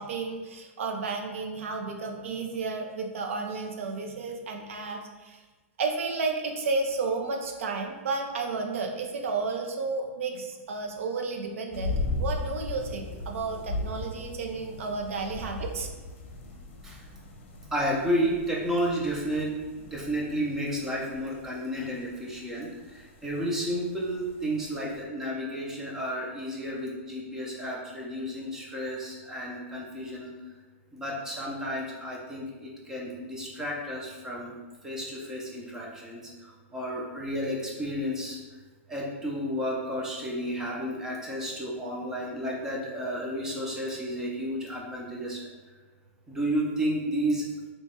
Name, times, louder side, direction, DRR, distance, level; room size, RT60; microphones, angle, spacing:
voice 1, 0.0-5.4 5.8-15.9, right 4 dB, 75° right, 2 dB, 0.5 m, -32 dB
sound 1, 11.7-25.0, left 2 dB, 60° left, 0.7 m, -38 dB
voice 2, 17.7-30.4 30.9-34.6 34.8-38.4 38.9-45.5 46.3-47.5, equal, 5° right, -3 dB, 0.5 m, -32 dB
2.9 x 2.2 x 4.1 m, 1.2 s
supercardioid pair, 165°, 7 cm